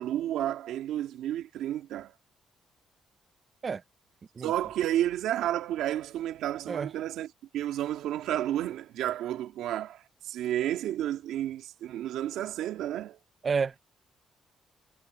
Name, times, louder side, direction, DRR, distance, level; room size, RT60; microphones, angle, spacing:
voice 1, 0.0-2.1 4.4-7.3 7.5-13.2, right 12 dB, 85° right, 2.1 m, -31 dB
voice 2, 13.4-13.8, right 5 dB, 40° right, 0.7 m, -29 dB
cardioid pair, 90°, 0 cm